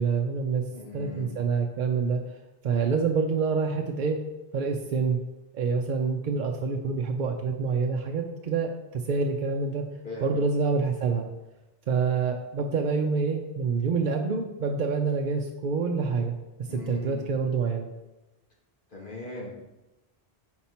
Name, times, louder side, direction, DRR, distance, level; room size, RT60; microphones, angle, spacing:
voice 1, 0.0-0.6 0.9-2.2 2.6-4.2 4.5-5.2 5.5-9.8 10.2-11.3 11.9-16.3 16.7-17.9, right 5 dB, 60° right, 2 dB, 0.6 m, -27 dB
voice 2, 0.7-1.4 10.0-10.4 16.7-17.3 18.9-19.6, left 3 dB, 55° left, -4 dB, 1.8 m, -39 dB
5.7 x 4.4 x 4.2 m, 1.0 s
omnidirectional pair, 1.0 m